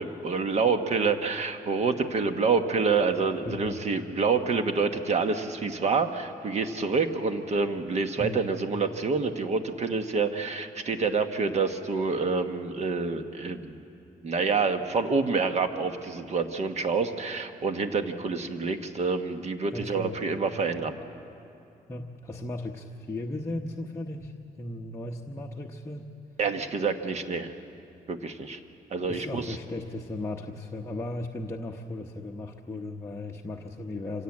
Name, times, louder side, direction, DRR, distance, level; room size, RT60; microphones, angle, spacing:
voice 1, 0.0-13.8 14.2-20.9 26.4-27.5 28.1-28.6 28.9-29.6, right 4 dB, 45° right, 7 dB, 1.3 m, -27 dB
voice 2, 3.5-3.8 8.2-8.5 19.7-20.2 21.9-26.1 29.1-34.2, left 2 dB, 15° left, -1 dB, 1.0 m, -36 dB
25.5 x 17.0 x 8.6 m, 2.6 s
cardioid pair, 130°, 16 cm